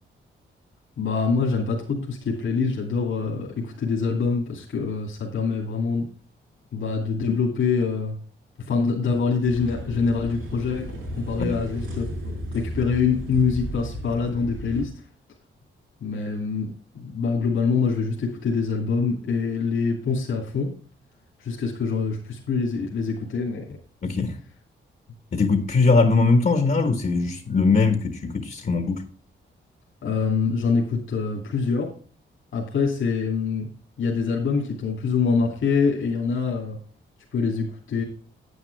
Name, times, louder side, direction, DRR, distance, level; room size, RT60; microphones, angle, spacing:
voice 1, 1.0-6.1 6.7-8.2 8.6-14.9 16.0-20.7 21.4-23.8 30.0-31.9 32.5-33.7 34.0-36.8 37.3-38.0, left 5 dB, 75° left, 2.5 m, -25 dB
sound 1, 9.4-14.8, equal, 85° right, 5.0 m, -34 dB
voice 2, 24.0-24.3 25.3-29.1, left 3 dB, 45° left, 1.3 m, -21 dB
9.6 x 8.8 x 3.3 m
cardioid pair, 90°, 20 cm